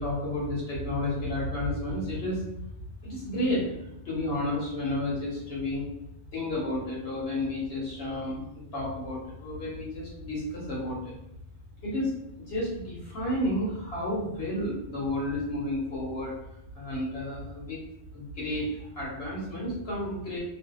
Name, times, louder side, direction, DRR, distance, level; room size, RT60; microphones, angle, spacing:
voice 1, 0.0-2.4 3.0-5.9 6.3-8.5 8.7-11.2 11.8-16.3 16.7-17.8 18.1-20.4, left 1 dB, 65° left, -5 dB, 1.1 m, -31 dB
2.6 x 2.3 x 2.3 m, 0.83 s
omnidirectional pair, 1.2 m